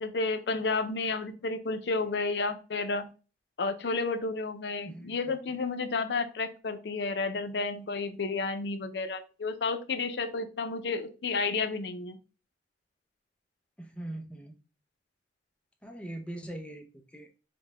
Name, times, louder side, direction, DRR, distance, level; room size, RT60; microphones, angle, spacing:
voice 1, 0.0-3.1 3.6-12.2, left 3 dB, 75° left, 9 dB, 0.5 m, -31 dB
voice 2, 4.9-5.2 13.8-14.6 15.8-17.3, right 1 dB, 5° left, 3 dB, 0.5 m, -41 dB
5.2 x 2.2 x 3.4 m, 0.34 s
head